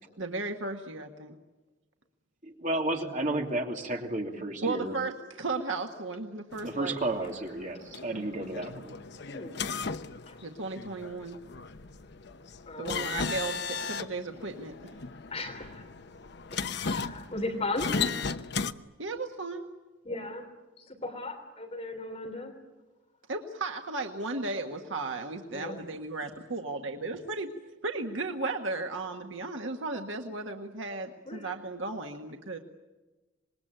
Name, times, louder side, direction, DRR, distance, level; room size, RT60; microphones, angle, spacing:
voice 1, 0.2-1.3 4.6-6.9 10.4-11.4 12.8-14.7 19.0-19.7 23.3-27.5 27.8-32.6, right 3 dB, 80° right, 4 dB, 1.6 m, -35 dB
voice 2, 2.4-4.9 6.6-8.9, right 2 dB, 40° right, 2 dB, 3.0 m, -32 dB
sound 1, 6.5-18.7, left 5 dB, 60° left, 0.9 m, -36 dB
voice 3, 9.3-9.6 10.3-10.4 12.7-13.1 15.3-15.9 16.5-18.0 20.0-20.5 20.8-22.5 25.5-25.8 31.3-31.5, left 2 dB, 35° left, 4 dB, 3.4 m, -37 dB
26.5 x 21.0 x 9.0 m, 1.2 s
head